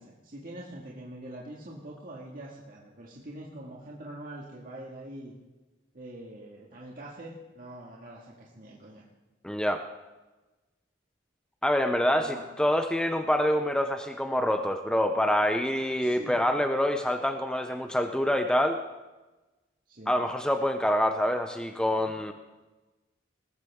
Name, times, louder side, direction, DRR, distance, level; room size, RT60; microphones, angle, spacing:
voice 1, 0.0-5.3 5.9-9.0 12.2-12.5 16.0-16.4 19.9-20.2, right 1 dB, 45° right, -4 dB, 1.9 m, -44 dB
voice 2, 9.4-9.8 11.6-18.8 20.1-22.3, equal, 5° left, 6 dB, 0.5 m, -26 dB
19.0 x 14.0 x 3.6 m, 1.2 s
head